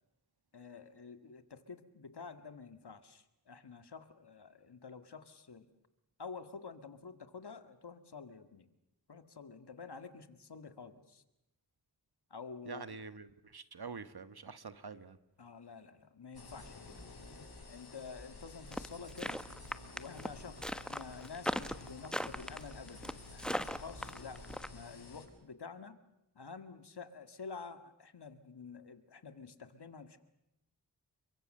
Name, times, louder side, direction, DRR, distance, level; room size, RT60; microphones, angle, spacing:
voice 1, 0.5-5.7 6.2-8.7 9.1-11.2 12.3-12.9 15.4-17.1 17.7-19.4 19.9-24.4 24.7-26.0 26.4-30.2, left 5 dB, 90° left, 10 dB, 2.0 m, -49 dB
voice 2, 12.6-15.2, right 5 dB, 75° right, 12 dB, 1.5 m, -46 dB
sound 1, 16.3-25.3, left 3 dB, 70° left, 7.9 m, -51 dB
sound 2, 18.7-24.7, equal, ahead, 1.2 m, -38 dB
29.5 x 24.0 x 6.7 m, 0.89 s
wide cardioid pair, 60°, 39 cm